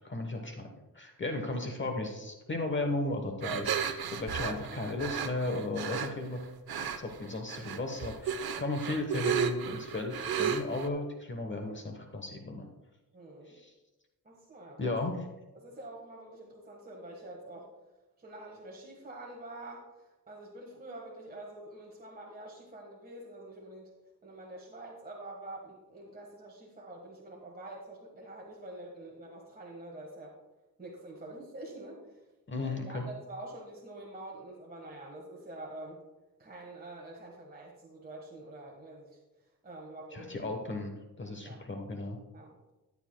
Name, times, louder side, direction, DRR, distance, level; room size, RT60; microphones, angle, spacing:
voice 1, 0.0-0.7 0.9-12.7 13.5-13.7 14.8-15.3 32.5-33.0 40.1-42.2, left 2 dB, 30° left, 4 dB, 1.0 m, -35 dB
sound 1, 3.4-6.1 6.7-7.2 7.5-10.9, right 7 dB, 85° right, 0.7 m, -33 dB
voice 2, 13.1-13.5 14.2-14.9 15.5-17.7 18.2-19.9 20.3-23.9 24.2-30.3 30.8-32.0 32.6-36.0 36.4-39.1 39.6-40.5 41.4-41.6 42.3-42.6, right 1 dB, 25° right, -2 dB, 1.4 m, -46 dB
14.0 x 9.6 x 2.2 m, 1.1 s
wide cardioid pair, 115°, 36 cm